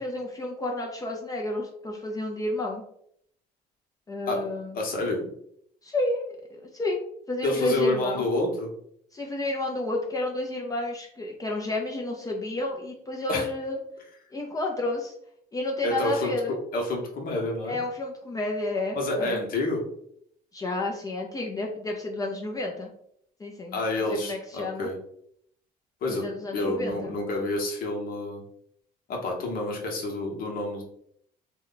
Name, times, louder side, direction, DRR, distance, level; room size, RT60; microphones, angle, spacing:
voice 1, 0.0-2.8 4.1-4.8 5.8-8.3 9.1-13.8 14.3-15.1 15.5-16.6 17.6-19.4 20.5-22.9 23.4-23.8 24.1-24.9 26.1-27.1, left 2 dB, 20° left, 0 dB, 0.5 m, -31 dB
voice 2, 4.7-5.2 7.4-8.7 13.3-13.5 15.8-16.4 16.7-17.8 18.9-19.8 23.7-24.9 26.0-26.2 26.5-28.4 29.1-30.8, left 2 dB, 60° left, 1 dB, 1.0 m, -28 dB
2.9 x 2.2 x 3.8 m, 0.69 s
cardioid pair, 110°, 17 cm